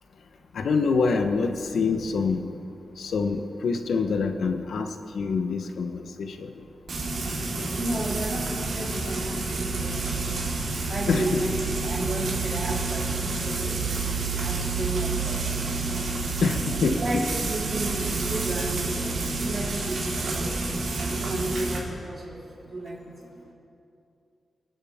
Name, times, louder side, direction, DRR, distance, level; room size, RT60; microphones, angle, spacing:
voice 1, 0.5-2.5 3.0-6.6 11.1-11.4 15.2-15.4 16.4-17.3, left 4 dB, 80° left, 6 dB, 1.1 m, -26 dB
Frying (food), 6.9-21.8, right 3 dB, 75° right, 3.9 m, -29 dB
voice 2, 7.8-10.4 10.9-13.8 14.3-15.8 16.8-20.6 21.0-23.1, right 1 dB, 40° right, -5 dB, 3.9 m, -33 dB
28.0 x 11.5 x 3.7 m, 2.7 s
wide cardioid pair, 115°, 0 cm